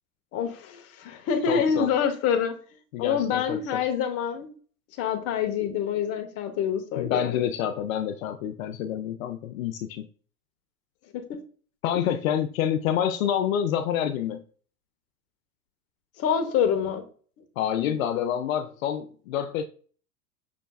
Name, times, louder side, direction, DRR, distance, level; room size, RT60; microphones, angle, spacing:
voice 1, 0.3-2.5 3.0-4.5 5.0-7.4 11.1-11.2 11.9-12.1 16.2-17.0, left 7 dB, 30° left, 0.9 m, -26 dB
voice 2, 1.5-1.9 2.9-3.8 7.0-10.1 11.8-14.4 17.6-19.6, left 9 dB, 65° left, 0.6 m, -27 dB
6.0 x 3.2 x 2.3 m
hypercardioid pair, 120°, 44 cm